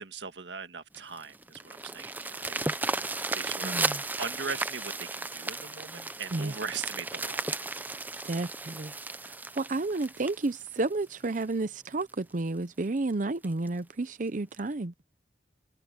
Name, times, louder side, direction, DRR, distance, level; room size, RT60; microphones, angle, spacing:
voice 1, 0.0-2.9 3.3-3.8 4.2-7.7, right 5 dB, 85° right, 1.6 m, -40 dB
sound 1, 0.9-11.4 12.0-12.1 12.5-12.6 13.0-13.1 13.4-13.7 14.6-14.7, right 2 dB, 10° right, 0.6 m, -35 dB
voice 2, 3.6-4.0 6.3-6.5 8.3-8.9 9.2-14.9, right 2 dB, 45° right, 0.7 m, -31 dB
head